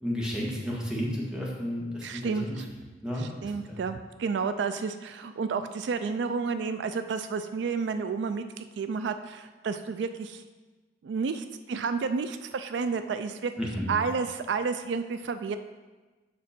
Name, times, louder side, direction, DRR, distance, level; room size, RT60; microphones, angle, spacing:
voice 1, 0.0-2.6 3.0-3.8 13.6-13.9, equal, 5° right, -4 dB, 1.6 m, -32 dB
voice 2, 2.0-2.6 3.2-10.4 11.0-13.5 13.9-15.6, right 5 dB, 75° right, 10 dB, 0.4 m, -31 dB
7.3 x 6.1 x 4.3 m, 1.3 s
head